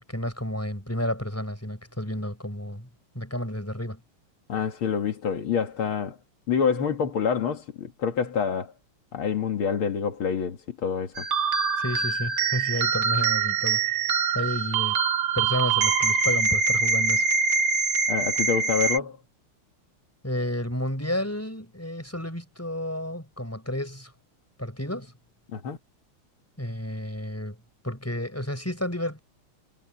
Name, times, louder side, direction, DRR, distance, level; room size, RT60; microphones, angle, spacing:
voice 1, 0.1-2.9 3.1-4.0 11.8-14.1 14.3-15.0 15.3-17.3 20.2-24.1 24.6-25.1 26.6-27.6 27.8-29.2, left 1 dB, 5° left, 6.4 m, -31 dB
voice 2, 4.5-6.2 6.5-8.7 9.1-11.3 18.1-19.2 25.5-25.8, left 6 dB, 80° left, 2.5 m, -27 dB
sound 1, 11.2-19.0, right 5 dB, 55° right, 2.0 m, -24 dB
omnidirectional pair, 2.3 m